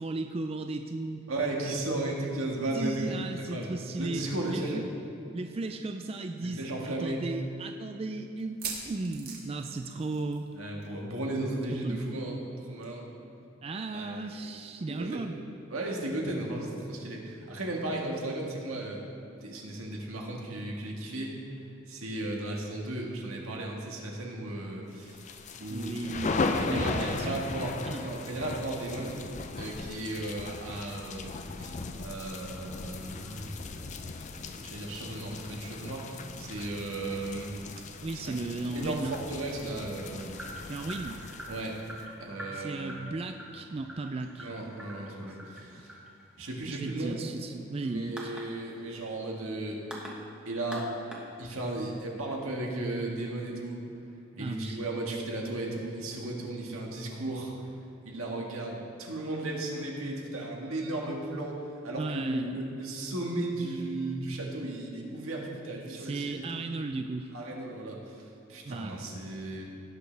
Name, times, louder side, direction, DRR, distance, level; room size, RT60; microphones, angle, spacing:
voice 1, 0.0-1.2 2.7-4.8 5.3-10.4 11.8-12.1 13.6-15.6 25.7-27.4 27.8-28.0 38.0-39.2 40.7-41.2 42.5-44.5 46.7-48.3 54.4-54.8 61.9-62.6 66.0-67.3 68.6-69.3, right 3 dB, 30° right, 6 dB, 0.3 m, -36 dB
voice 2, 1.3-3.1 3.5-3.7 4.0-4.8 6.4-7.2 10.5-12.4 12.6-13.0 13.9-14.5 14.9-15.2 15.7-19.0 19.4-21.4 21.9-25.2 25.6-25.9 26.5-29.2 29.5-33.5 34.5-37.5 38.2-38.3 38.7-40.4 41.5-41.8 42.2-42.9 44.4-45.9 46.4-47.1 47.8-49.8 50.4-50.9 51.4-53.8 54.4-57.5 58.0-66.6 67.3-68.2 68.5-69.6, right 2 dB, 90° right, -1 dB, 1.7 m, -35 dB
sound 1, 8.4-10.5 10.8-11.0 11.3-11.4 12.8-12.9, right 5 dB, 45° right, 1.7 m, -41 dB
sound 2, 25.1-42.0, left 3 dB, 35° left, 0.4 m, -37 dB
bass pizzicato, 40.3-51.8, equal, 5° right, 1.2 m, -46 dB
18.0 x 6.4 x 3.4 m, 2.8 s
head